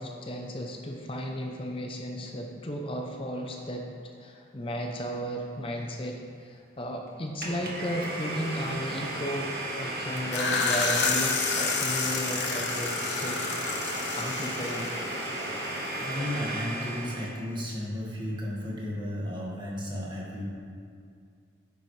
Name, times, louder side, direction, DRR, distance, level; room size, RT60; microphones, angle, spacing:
voice 1, 0.0-3.9 4.2-9.5 9.8-13.4 14.2-15.0, equal, 30° left, 1 dB, 0.7 m, -34 dB
Domestic sounds home sounds, 7.4-17.4, right 1 dB, 55° right, 1.5 m, -34 dB
voice 2, 9.8-10.9 16.0-20.4, equal, 25° right, -4 dB, 1.7 m, -34 dB
sound 1, 10.2-15.7, left 4 dB, 70° left, 1.0 m, -30 dB
10.0 x 9.2 x 3.3 m, 2.3 s
head